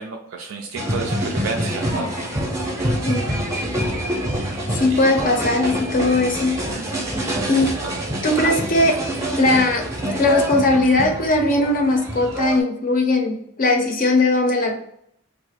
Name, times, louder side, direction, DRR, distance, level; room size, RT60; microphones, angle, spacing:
voice 1, 0.0-2.1 4.5-4.7 6.7-7.1 7.8-8.0 8.4-8.5, right 4 dB, 70° right, 2 dB, 0.4 m, -31 dB
sound 1, 0.8-12.6, equal, 15° right, 0.6 m, -26 dB
voice 2, 4.7-6.6 7.5-7.8 8.2-9.0 9.4-9.8 10.2-14.8, left 2 dB, 40° left, 3 dB, 0.5 m, -19 dB
2.4 x 2.4 x 4.0 m, 0.72 s
head